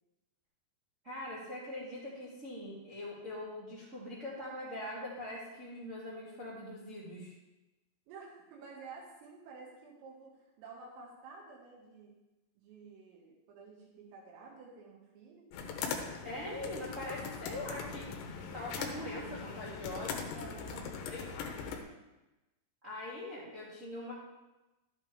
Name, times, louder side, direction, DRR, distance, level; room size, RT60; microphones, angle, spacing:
voice 1, 1.0-7.3 16.2-18.1 18.5-20.2 21.1-21.2 22.8-24.1, left 1 dB, 25° right, -9 dB, 1.7 m, -42 dB
voice 2, 8.1-12.1 12.6-15.5 20.3-20.9, right 4 dB, 80° right, -2 dB, 4.3 m, -51 dB
teclas de computador, 15.5-21.8, left 6 dB, 75° left, 2.9 m, -41 dB
12.5 x 8.3 x 3.5 m, 1.0 s
omnidirectional pair, 5.9 m